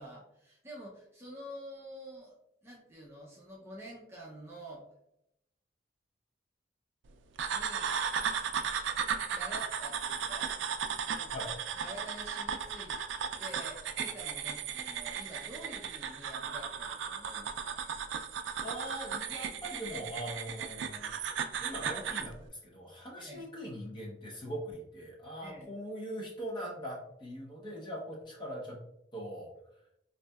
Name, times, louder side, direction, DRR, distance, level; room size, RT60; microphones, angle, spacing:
voice 1, 0.0-2.4 2.6-4.8 7.5-7.9 9.3-10.5 11.1-11.3 11.7-13.0 13.4-17.8 23.2-23.5 25.4-25.7, right 1 dB, 15° right, -4 dB, 0.5 m, -48 dB
sound 1, 7.4-22.3, right 7 dB, 90° right, 0.3 m, -36 dB
voice 2, 18.6-21.1 21.6-28.8 29.1-29.5, equal, 25° left, -3 dB, 1.0 m, -41 dB
4.0 x 2.6 x 2.3 m, 0.82 s
head